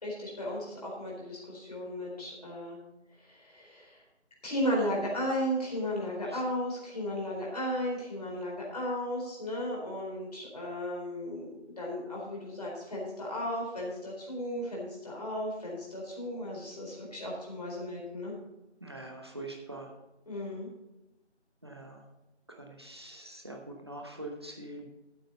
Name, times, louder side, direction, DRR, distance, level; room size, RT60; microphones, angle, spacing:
voice 1, 0.0-2.8 3.2-4.0 4.4-18.3 20.3-20.7, equal, 35° left, -3 dB, 4.1 m, -35 dB
voice 2, 18.8-19.9 21.6-22.0 22.5-24.9, right 2 dB, 20° right, 1 dB, 1.1 m, -44 dB
14.0 x 8.9 x 4.1 m, 0.97 s
figure-of-eight pair, 170°, 35 cm